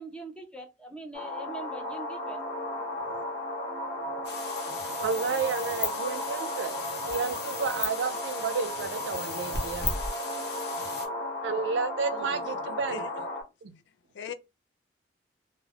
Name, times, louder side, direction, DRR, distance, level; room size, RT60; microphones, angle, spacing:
voice 1, 0.0-2.4, right 2 dB, 5° left, 0.5 m, -42 dB
sound 1, 1.1-13.4, left 1 dB, 45° left, 1.3 m, -35 dB
sound 2, 4.2-11.1, left 4 dB, 65° left, 0.8 m, -37 dB
voice 2, 5.0-6.7 7.1-10.0 11.4-13.1 13.6-13.7, right 5 dB, 90° right, 0.4 m, -31 dB
voice 3, 12.1-12.6 12.9-13.1 14.1-14.3, left 8 dB, 85° left, 0.4 m, -40 dB
3.3 x 2.0 x 2.3 m
head